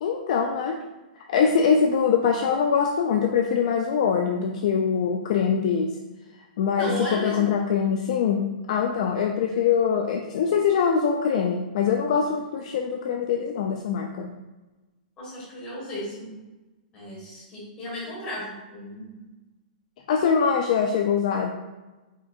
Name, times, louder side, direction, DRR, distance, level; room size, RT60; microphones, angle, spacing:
voice 1, 0.0-0.8 1.2-6.0 6.6-14.3 20.1-21.5, left 6 dB, 50° left, 2 dB, 0.3 m, -23 dB
voice 2, 6.8-7.5 15.2-16.3 16.9-19.2, equal, 20° left, -6 dB, 1.5 m, -34 dB
4.4 x 3.5 x 2.4 m, 1.1 s
hypercardioid pair, 165°, 5 cm